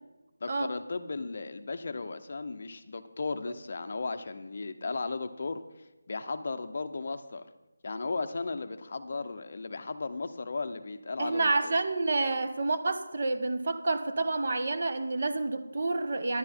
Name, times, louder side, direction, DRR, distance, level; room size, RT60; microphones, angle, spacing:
voice 1, 0.4-5.6 6.1-7.5 7.8-11.8, left 3 dB, 40° left, 9 dB, 0.6 m, -35 dB
voice 2, 11.2-16.4, right 3 dB, 40° right, 8 dB, 0.7 m, -29 dB
11.0 x 9.8 x 4.4 m, 1.0 s
figure-of-eight pair, 175°, 0 cm